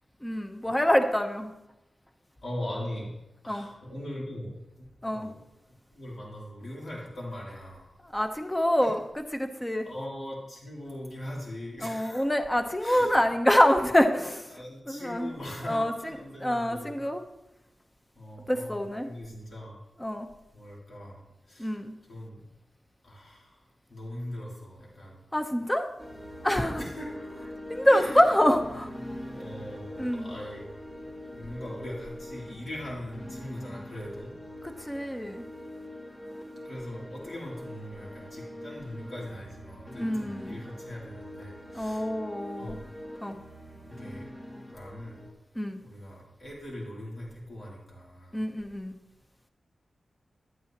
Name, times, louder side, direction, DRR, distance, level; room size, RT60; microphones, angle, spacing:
voice 1, 0.2-1.5 3.5-3.7 5.0-5.3 8.0-9.9 11.8-14.6 14.9-15.3 15.6-17.2 18.5-19.1 20.0-20.3 21.6-21.9 25.3-25.9 26.4-26.8 27.7-28.9 30.0-30.4 34.6-35.5 40.0-40.6 41.7-42.8 43.2-43.4 45.5-45.8 48.3-49.0, equal, 15° left, 6 dB, 0.9 m, -26 dB
voice 2, 2.4-3.1 3.4-5.3 5.9-7.9 8.8-8.9 9.8-12.2 12.8-13.2 14.5-17.0 18.1-19.8 20.5-21.2 21.5-21.7 22.1-22.4 23.0-23.6 23.9-25.2 26.8-27.1 27.9-28.2 29.3-30.6 31.3-34.3 36.6-42.1 42.6-42.8 43.8-44.3 44.7-45.2 45.8-48.4, left 1 dB, 65° left, -4 dB, 3.2 m, -40 dB
sound 1, 26.0-45.3, equal, 35° left, 2.4 m, -43 dB
11.0 x 9.3 x 3.0 m, 0.92 s
cardioid pair, 60°, 0 cm